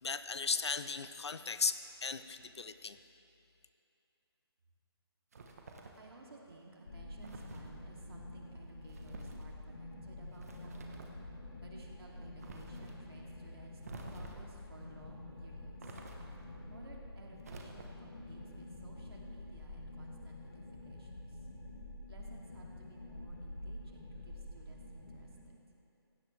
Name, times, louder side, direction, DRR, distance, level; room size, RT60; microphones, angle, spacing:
voice 1, 0.0-3.0, left 5 dB, 85° left, 11 dB, 0.8 m, -36 dB
sound 1, 5.3-6.1 7.2-7.7 8.9-9.5 10.3-11.2 12.4-13.0 13.8-14.6 15.8-16.5 17.4-18.1, right 3 dB, 35° right, 1.2 m, -50 dB
voice 2, 6.0-10.9 11.6-15.9 16.7-21.4 22.1-25.6, right 2 dB, 65° right, -2 dB, 2.9 m, -57 dB
sound 2, 6.9-25.5, left 1 dB, 60° left, 2.4 m, -48 dB
17.0 x 16.5 x 3.4 m, 2.8 s
hypercardioid pair, 175°, 14 cm